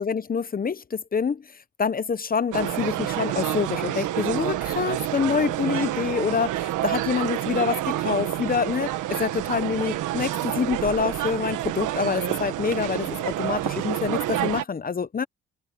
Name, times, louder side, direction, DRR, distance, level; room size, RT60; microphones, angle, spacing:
voice 1, 0.0-15.3, left 6 dB, 30° left, 0.7 m, -26 dB
sound 1, 2.5-14.6, right 14 dB, 90° right, 1.5 m, -28 dB
open air
cardioid pair, 90°, 30 cm